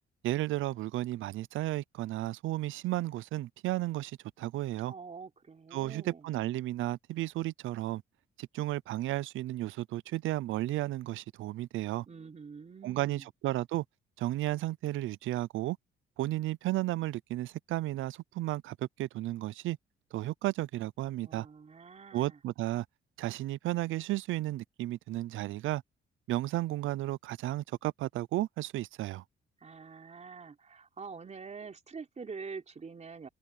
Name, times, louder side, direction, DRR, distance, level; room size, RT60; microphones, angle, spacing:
voice 1, 0.2-4.9 5.7-8.0 8.4-12.1 12.8-13.8 14.2-15.8 16.2-19.8 20.1-21.5 22.1-22.8 23.2-25.8 26.3-29.2, right 16 dB, 80° right, 0.6 m, -33 dB
voice 2, 4.9-6.3 12.1-13.3 21.2-22.4 29.6-33.3, right 5 dB, 35° right, 3.6 m, -46 dB
cardioid pair, 90°, 20 cm